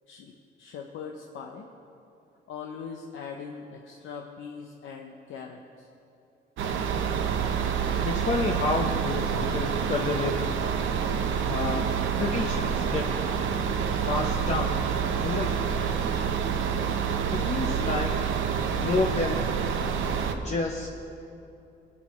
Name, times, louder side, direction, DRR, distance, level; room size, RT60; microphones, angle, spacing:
voice 1, 0.1-1.7 2.5-5.9 17.4-18.1, left 6 dB, 80° left, 1 dB, 0.8 m, -41 dB
sound 1, 6.6-20.3, right 7 dB, 75° right, 0.8 m, -27 dB
voice 2, 8.0-10.6 11.5-13.1 14.1-14.8 15.2-15.6 17.3-18.1 18.7-19.4 20.4-20.9, left 3 dB, 35° left, 0 dB, 0.9 m, -29 dB
22.0 x 8.7 x 3.1 m, 2.8 s
cardioid pair, 90°, 20 cm